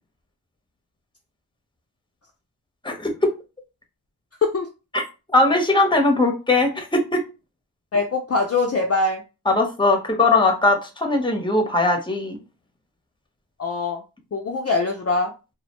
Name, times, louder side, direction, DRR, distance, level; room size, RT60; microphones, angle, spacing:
voice 1, 2.8-3.3 4.9-5.0 5.3-7.2 9.5-12.4, left 2 dB, 10° left, 3 dB, 0.8 m, -20 dB
voice 2, 7.9-9.2 13.6-14.0 14.3-15.3, left 3 dB, 40° left, 1 dB, 0.5 m, -23 dB
2.3 x 2.1 x 2.9 m, 0.29 s
cardioid pair, 50°, 40 cm